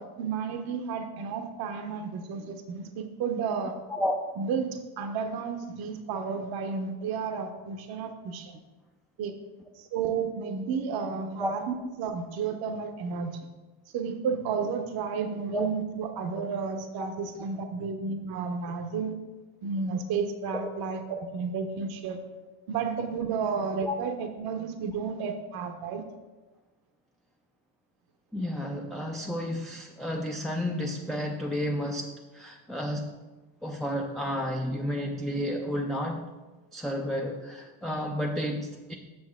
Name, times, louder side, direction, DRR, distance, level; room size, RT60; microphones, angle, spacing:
voice 1, 0.0-3.8 4.4-8.5 9.2-9.3 9.8-13.4 13.9-19.1 19.6-21.0 21.3-22.2 22.7-26.0, right 5 dB, 60° right, 6 dB, 0.8 m, -32 dB
voice 2, 28.3-33.1 33.6-36.3 36.7-39.0, equal, ahead, 0 dB, 0.4 m, -31 dB
7.8 x 6.4 x 3.6 m, 1.2 s
cardioid pair, 120°, 43 cm